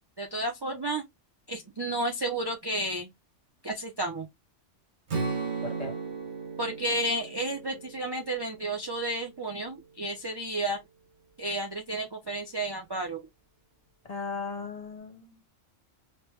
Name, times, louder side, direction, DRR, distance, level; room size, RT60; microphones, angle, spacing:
voice 1, 0.2-1.0 1.5-3.1 3.6-4.3 6.6-10.8 11.4-13.2, right 1 dB, 35° right, 0.4 m, -32 dB
Strum, 5.1-9.3, right 4 dB, 60° right, 1.4 m, -36 dB
voice 2, 5.6-5.9 14.1-15.4, left 4 dB, 35° left, 0.8 m, -37 dB
3.2 x 2.2 x 3.0 m
omnidirectional pair, 1.2 m